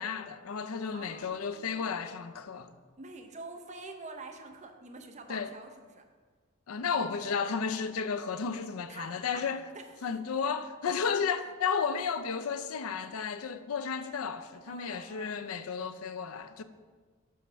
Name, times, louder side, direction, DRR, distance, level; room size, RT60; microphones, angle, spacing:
voice 1, 0.0-2.7 5.3-5.5 6.7-9.6 10.0-16.6, left 6 dB, 85° left, 0.5 m, -33 dB
voice 2, 0.9-2.2 3.0-6.1 8.9-9.4 9.7-10.2 10.5-10.6 14.6-15.5, right 3 dB, 35° right, 0.7 m, -47 dB
7.2 x 4.5 x 6.1 m
head